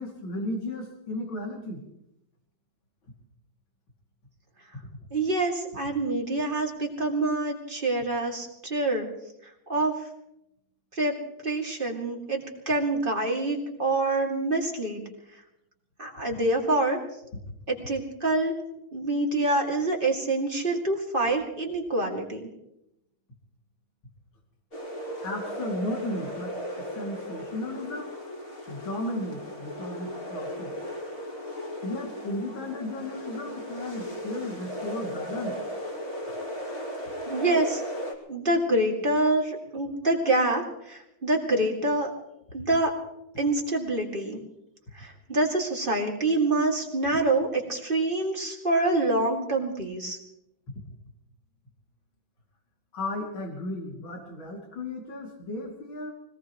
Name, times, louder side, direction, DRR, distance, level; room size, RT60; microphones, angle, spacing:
voice 1, 0.0-1.8 14.0-14.2 25.2-28.2 28.7-30.7 31.8-35.6 52.9-56.1, left 1 dB, 75° left, 0 dB, 3.4 m, -35 dB
voice 2, 5.1-9.1 9.7-10.0 10.9-11.2 11.4-15.0 16.0-17.0 17.7-18.6 18.9-22.5 37.3-37.8 38.3-42.1 42.5-42.9 43.4-44.4 44.9-50.2, right 2 dB, 25° right, 1 dB, 2.5 m, -26 dB
sound 1, 24.7-38.1, equal, 25° left, 2.8 m, -36 dB
24.5 x 18.5 x 3.1 m, 0.84 s
omnidirectional pair, 2.2 m